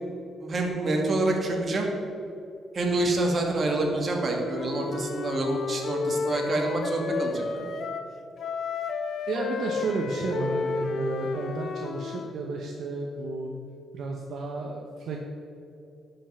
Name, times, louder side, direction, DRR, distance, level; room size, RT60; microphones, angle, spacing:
voice 1, 0.4-1.9 2.7-7.7, right 2 dB, 40° right, 0 dB, 2.2 m, -27 dB
Wind instrument woodwind instrument, 4.4-8.1 8.4-12.4, left 4 dB, 60° left, 0.8 m, -32 dB
voice 2, 9.3-13.5 13.9-15.2, right 2 dB, 65° right, 0 dB, 1.1 m, -32 dB
11.0 x 5.5 x 7.2 m, 2.7 s
cardioid pair, 90°, 0 cm